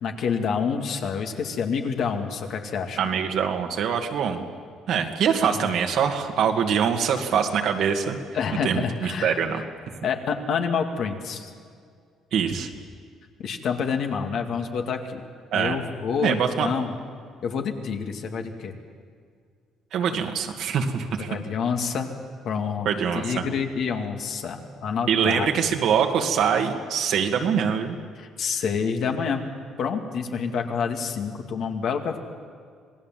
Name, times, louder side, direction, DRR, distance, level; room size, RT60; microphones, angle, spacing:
voice 1, 0.0-3.0 5.6-5.7 8.3-9.4 10.0-11.5 13.4-15.2 15.5-16.9 17.4-18.7 21.2-22.1 22.4-22.9 23.1-25.5 28.2-29.5 29.8-32.2, left 6 dB, 60° left, 4 dB, 2.3 m, -28 dB
voice 2, 3.0-4.4 4.9-8.2 8.6-9.6 12.3-12.7 15.5-15.8 16.2-16.8 19.9-21.4 22.9-23.4 25.1-28.0, right 7 dB, 70° right, 4 dB, 2.2 m, -24 dB
27.0 x 18.5 x 7.6 m, 2.1 s
cardioid pair, 110°, 0 cm